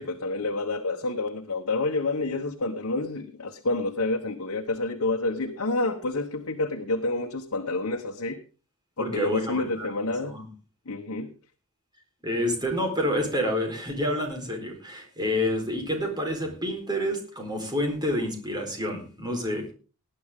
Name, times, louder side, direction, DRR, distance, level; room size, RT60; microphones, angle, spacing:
voice 1, 0.0-8.4 9.0-10.3 10.9-11.3, left 2 dB, 65° left, 3 dB, 1.2 m, -28 dB
voice 2, 9.0-9.9 10.2-10.5 12.2-19.7, equal, 20° right, 3 dB, 4.2 m, -28 dB
19.0 x 10.0 x 3.7 m, 0.36 s
head